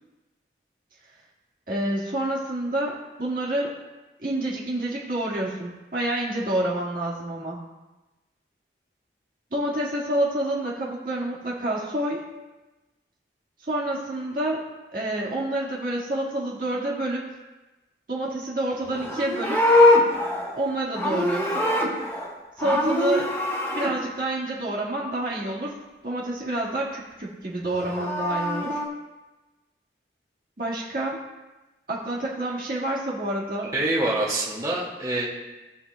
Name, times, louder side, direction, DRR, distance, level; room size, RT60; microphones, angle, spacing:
voice 1, 1.7-3.7 4.2-7.6 9.5-12.2 13.7-14.6 14.9-17.2 18.1-19.6 20.5-21.7 22.6-23.3 23.7-25.8 26.0-28.8 30.6-31.2 31.9-33.7, right 1 dB, 50° right, -4 dB, 1.8 m, -28 dB
Livestock farm animals working animals, 18.9-22.3 22.6-23.9 27.7-28.9, left 1 dB, 15° left, 2.2 m, -23 dB
voice 2, 33.7-35.3, right 2 dB, 20° right, -5 dB, 1.9 m, -25 dB
18.0 x 6.9 x 2.2 m, 1.1 s
head